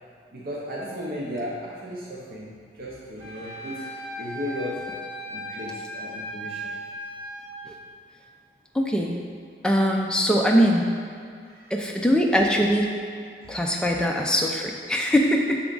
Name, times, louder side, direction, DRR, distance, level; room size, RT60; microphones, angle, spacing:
voice 1, 0.3-4.9 5.3-6.8 11.4-11.7 13.4-13.9, equal, 55° right, -5 dB, 0.7 m, -36 dB
Wind instrument woodwind instrument, 3.2-7.5, equal, 25° right, 1.3 m, -37 dB
voice 2, 8.7-9.2 9.6-10.8 11.7-12.9 13.5-15.6, equal, 5° left, 0 dB, 0.4 m, -22 dB
6.9 x 3.5 x 3.8 m, 2.3 s
head